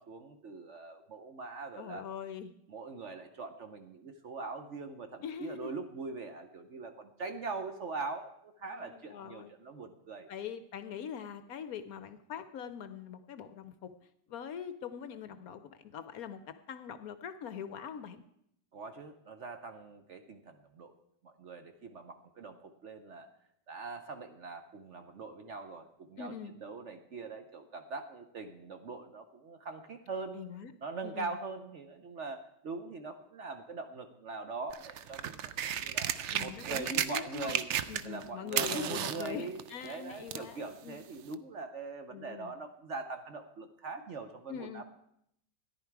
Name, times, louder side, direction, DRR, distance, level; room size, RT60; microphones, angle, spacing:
voice 1, 0.0-2.0 2.7-10.3 18.7-20.9 21.2-23.3 23.7-30.4 30.8-37.7 38.0-44.8, right 4 dB, 55° right, 7 dB, 0.9 m, -42 dB
voice 2, 1.8-2.5 5.2-5.7 8.7-9.5 10.3-13.9 14.3-18.2 26.2-26.5 30.3-30.7 31.0-31.3 36.3-37.6 37.9-41.0 42.1-42.5 44.5-44.8, left 8 dB, 65° left, 11 dB, 1.0 m, -43 dB
sound 1, 34.7-38.2 38.5-40.5 41.3-41.4, right 9 dB, 75° right, 0.6 m, -34 dB
14.0 x 10.5 x 4.6 m, 0.76 s
omnidirectional pair, 1.9 m